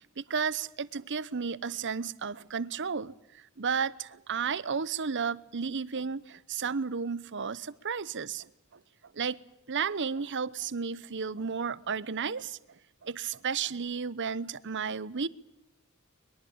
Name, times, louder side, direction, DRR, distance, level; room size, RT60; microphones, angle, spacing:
voice 1, 0.2-8.5 9.1-9.4 9.7-12.6 13.0-15.3, right 6 dB, 55° right, 0.9 m, -33 dB
22.5 x 22.0 x 8.8 m
head